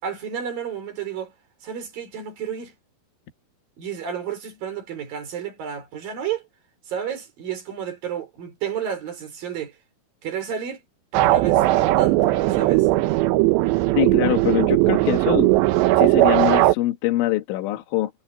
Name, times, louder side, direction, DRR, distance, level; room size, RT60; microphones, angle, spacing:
voice 1, 0.0-1.3 1.6-2.7 3.8-6.4 6.9-9.8 10.2-10.8 11.1-12.9, right 8 dB, 50° right, 5.9 m, -31 dB
sound 1, 11.1-16.8, right 17 dB, 75° right, 2.9 m, -18 dB
voice 2, 14.0-15.5 15.9-18.1, left 16 dB, 80° left, 3.9 m, -23 dB
omnidirectional pair, 5.5 m